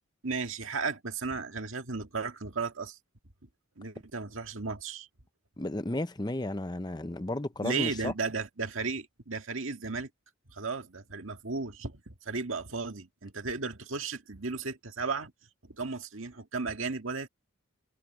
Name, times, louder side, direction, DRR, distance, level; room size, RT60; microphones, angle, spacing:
voice 1, 0.2-3.0 3.8-5.1 7.6-10.1 10.5-15.3 15.6-17.3, right 4 dB, 65° right, 1.9 m, -35 dB
voice 2, 5.6-8.1, left 1 dB, 20° left, 0.7 m, -33 dB
head